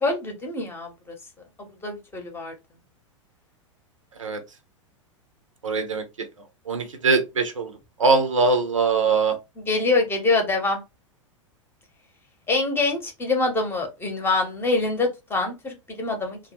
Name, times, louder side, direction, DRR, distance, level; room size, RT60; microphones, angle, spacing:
voice 1, 0.0-1.1 1.8-2.5 9.6-10.8 12.5-16.4, left 3 dB, 15° left, 0.9 m, -25 dB
voice 2, 5.6-6.0 6.7-7.7 8.0-9.4, right 4 dB, 75° right, 0.6 m, -21 dB
2.2 x 2.2 x 3.0 m
figure-of-eight pair, 95°, 17 cm